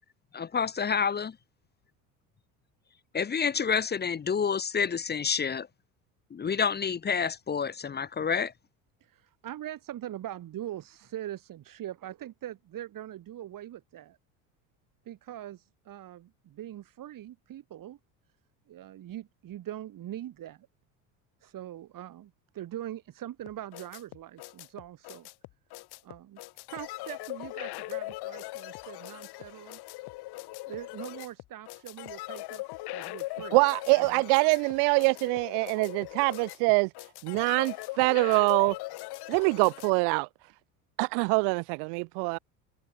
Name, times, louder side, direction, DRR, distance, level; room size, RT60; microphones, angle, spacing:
voice 1, 0.3-1.3 3.1-5.7 6.3-8.5, left 6 dB, 25° left, 1.0 m, -28 dB
voice 2, 9.0-14.2 15.1-18.0 18.7-20.7 21.4-25.3 26.0-26.4 26.7-29.8 30.7-33.6 34.0-34.2, right 12 dB, 50° right, 5.7 m, -42 dB
sound 1, 23.5-39.9, left 20 dB, 65° left, 6.1 m, -40 dB
voice 3, 33.5-36.9 37.2-38.7 39.3-40.3 41.0-42.4, right 35 dB, 65° right, 0.9 m, -24 dB
hypercardioid pair, 85°, 42 cm